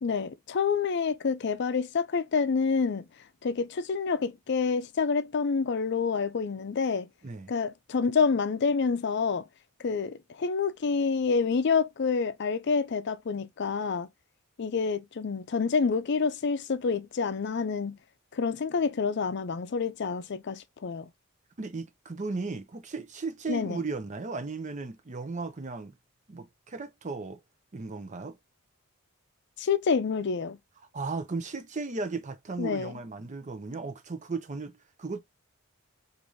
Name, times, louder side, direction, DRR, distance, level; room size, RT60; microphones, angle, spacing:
voice 1, 0.0-3.1 3.4-7.1 7.5-9.4 9.8-14.1 14.6-18.0 18.3-21.1 23.5-23.8 29.6-30.6 32.6-32.9, left 5 dB, 55° left, 0.5 m, -28 dB
voice 2, 21.6-26.0 26.3-27.4 27.7-28.4 30.9-35.2, right 3 dB, 35° right, 0.6 m, -36 dB
4.7 x 2.6 x 2.5 m
head